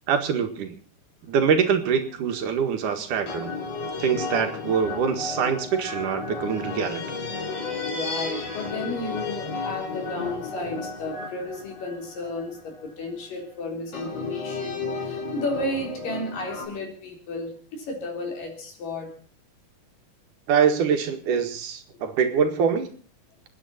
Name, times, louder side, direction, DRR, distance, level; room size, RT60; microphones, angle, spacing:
voice 1, 0.1-0.8 1.2-3.5 4.0-7.0 20.5-23.0, right 7 dB, 70° right, 3.3 m, -24 dB
sound 1, 1.4-1.9 3.3-12.9 13.9-16.7, left 3 dB, 50° left, 4.6 m, -33 dB
voice 2, 7.9-19.2, left 2 dB, 85° left, 5.6 m, -33 dB
28.5 x 9.6 x 4.2 m
omnidirectional pair, 3.8 m